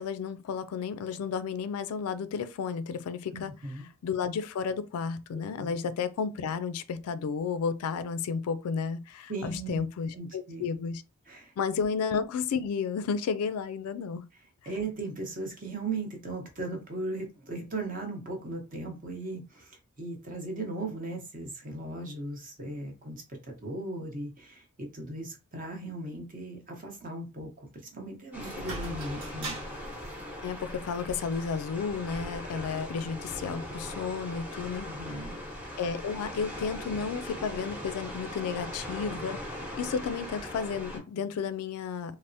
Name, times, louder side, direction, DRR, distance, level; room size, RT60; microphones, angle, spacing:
voice 1, 0.0-3.5 4.0-11.0 11.6-14.2 30.4-34.9 35.8-42.2, left 6 dB, 70° left, 0.3 m, -32 dB
voice 2, 3.3-3.9 5.6-5.7 9.3-9.8 10.1-10.7 11.3-11.5 14.7-29.6 34.9-35.4, right 2 dB, 40° right, 0.9 m, -37 dB
sound 1, 28.3-41.0, equal, 5° right, 0.9 m, -40 dB
sound 2, 28.4-33.7, right 2 dB, 60° right, 1.1 m, -45 dB
3.3 x 2.0 x 2.6 m
head